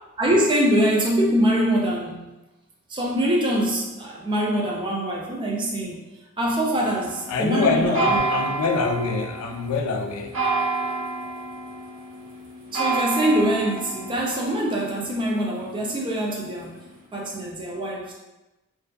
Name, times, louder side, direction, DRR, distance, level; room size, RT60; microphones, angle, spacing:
voice 1, 0.2-2.3 2.9-6.1 6.4-8.3 12.7-16.8 17.1-18.1, right 1 dB, 20° right, -2 dB, 0.4 m, -24 dB
sound 1, 6.7-16.9, right 3 dB, 70° right, 0.8 m, -30 dB
voice 2, 7.3-10.5, left 4 dB, 85° left, 3 dB, 0.3 m, -25 dB
2.6 x 2.3 x 2.2 m, 1.0 s
head